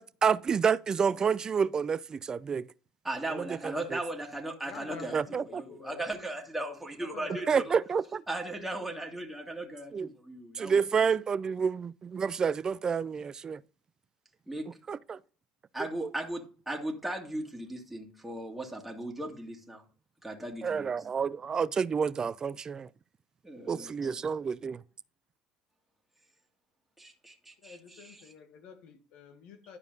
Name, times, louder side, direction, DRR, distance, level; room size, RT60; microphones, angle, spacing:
voice 1, 0.0-2.7 3.3-4.0 5.1-5.6 7.5-8.2 9.9-10.1 10.5-13.6 14.9-15.2 16.0-16.1 20.6-22.9 23.7-24.8, right 6 dB, 30° right, 0.4 m, -29 dB
voice 2, 3.0-7.7 8.3-10.8 14.5-14.7 15.7-19.8 20.2-21.1 23.4-24.2 27.0-28.3, right 1 dB, 5° right, 2.1 m, -37 dB
voice 3, 4.6-6.0 7.0-7.7 27.6-29.8, left 6 dB, 65° left, 1.4 m, -48 dB
11.0 x 4.9 x 5.2 m
hypercardioid pair, 80°, 2 cm